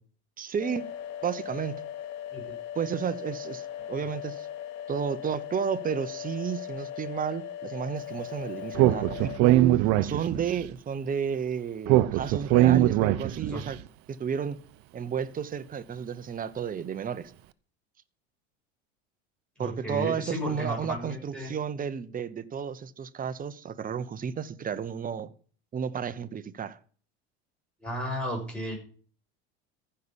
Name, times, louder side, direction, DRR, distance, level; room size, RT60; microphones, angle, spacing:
voice 1, 0.4-0.9 1.2-1.7 2.7-4.5 4.9-13.8 14.1-14.6 14.9-17.3 19.6-25.3 25.7-26.8, right 7 dB, 25° right, 1.0 m, -32 dB
sound 1, 0.6-9.4, left 10 dB, 60° left, 1.5 m, -39 dB
Speech, 8.7-10.6 11.9-13.6, right 14 dB, 60° right, 0.8 m, -21 dB
voice 2, 13.1-13.6 19.6-21.5 27.8-28.8, equal, 5° left, 7.1 m, -34 dB
14.5 x 5.7 x 7.0 m
hypercardioid pair, 90°, 32 cm